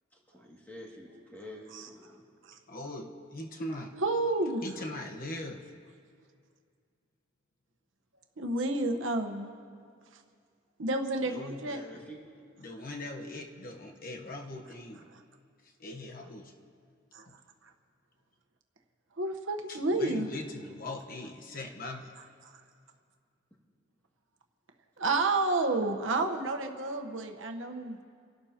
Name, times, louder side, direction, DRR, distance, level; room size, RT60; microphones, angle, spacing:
voice 1, 0.3-2.2 11.9-12.2, left 1 dB, 10° left, -3 dB, 2.2 m, -48 dB
voice 2, 2.7-3.9 4.6-5.6 11.2-12.0 12.6-15.1 15.8-16.5 17.3-17.4 19.7-22.1, left 1 dB, 45° left, 2 dB, 1.1 m, -40 dB
voice 3, 4.0-4.6 8.4-9.5 10.8-11.8 17.1-17.2 19.2-20.3 25.0-28.0, right 2 dB, 70° right, 5 dB, 1.1 m, -30 dB
30.0 x 12.0 x 2.9 m, 2.2 s
head